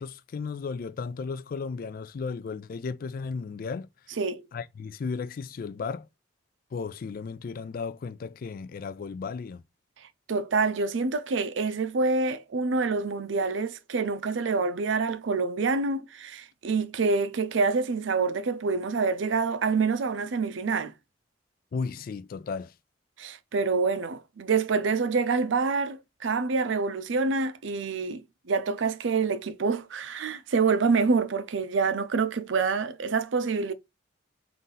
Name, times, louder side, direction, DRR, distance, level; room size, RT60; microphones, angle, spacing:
voice 1, 0.0-3.9 4.5-6.1 6.7-9.6 21.7-22.7, left 5 dB, 50° left, 0.3 m, -34 dB
voice 2, 10.3-20.9 23.2-33.7, right 4 dB, 75° right, 0.5 m, -27 dB
4.0 x 2.6 x 3.8 m
head